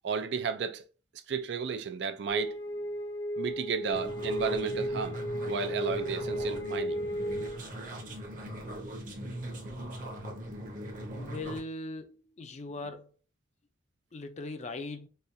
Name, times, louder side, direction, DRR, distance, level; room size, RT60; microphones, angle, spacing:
voice 1, 0.0-0.8 1.3-2.6 3.4-7.0 12.8-12.9, right 5 dB, 65° right, 0.4 m, -33 dB
sound 1, 2.3-7.6, equal, 85° left, 0.7 m, -34 dB
sound 2, 3.9-11.6, right 1 dB, 45° right, 0.9 m, -41 dB
voice 2, 11.2-13.1 14.1-15.1, left 2 dB, 40° left, 0.4 m, -39 dB
4.1 x 2.3 x 2.5 m
head